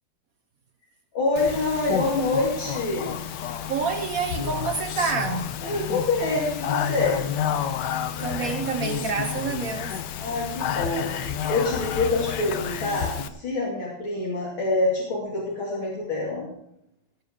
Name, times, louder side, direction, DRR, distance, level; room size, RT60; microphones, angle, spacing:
voice 1, 1.1-3.2 5.6-7.3 10.2-16.5, left 2 dB, 80° left, 3.5 m, -26 dB
Speech, 1.4-13.3, left 8 dB, 65° left, 1.3 m, -30 dB
voice 2, 3.7-5.6 8.2-10.0, right 5 dB, 55° right, 1.0 m, -28 dB
19.0 x 7.2 x 5.0 m
omnidirectional pair, 2.2 m